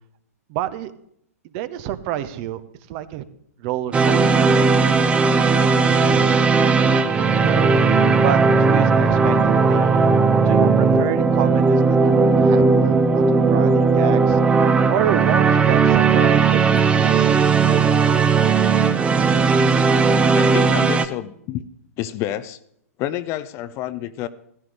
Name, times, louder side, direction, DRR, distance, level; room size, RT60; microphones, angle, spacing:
voice 1, 0.5-0.9 1.5-2.6 2.9-3.2 3.6-6.5 6.8-10.1 10.4-18.5, right 12 dB, 40° right, 13 dB, 0.9 m, -29 dB
sound 1, 3.9-21.1, right 4 dB, 15° right, 0.8 m, -17 dB
voice 2, 20.3-21.6 22.0-22.6 23.0-24.3, left 13 dB, 35° left, 14 dB, 0.6 m, -28 dB
15.5 x 14.0 x 3.4 m, 0.72 s
figure-of-eight pair, 110°, 9 cm